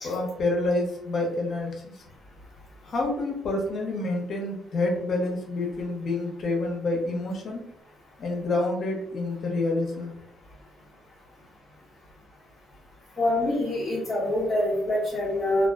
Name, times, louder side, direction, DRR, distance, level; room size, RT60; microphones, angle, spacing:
voice 1, 0.0-1.9 2.8-7.6 8.2-10.1, left 2 dB, 55° left, 1 dB, 0.7 m, -28 dB
voice 2, 13.2-15.7, left 1 dB, 25° left, -9 dB, 0.9 m, -25 dB
2.3 x 2.2 x 2.3 m, 0.71 s
cardioid pair, 90°, 0 cm